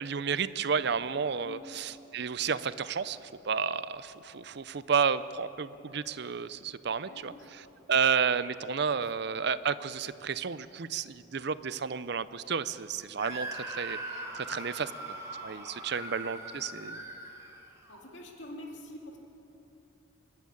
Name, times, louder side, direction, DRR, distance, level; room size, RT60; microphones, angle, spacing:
voice 1, 0.0-3.2 3.4-7.3 7.9-14.0 14.3-15.2 15.4-17.0, right 6 dB, 55° right, 15 dB, 0.6 m, -31 dB
voice 2, 7.0-7.8 8.9-9.1 14.3-15.1 15.6-16.0 17.9-19.2, left 1 dB, 60° left, 0 dB, 2.9 m, -48 dB
Screaming, 13.2-18.0, right 2 dB, 15° right, 3.3 m, -41 dB
26.5 x 12.0 x 8.7 m, 3.0 s
head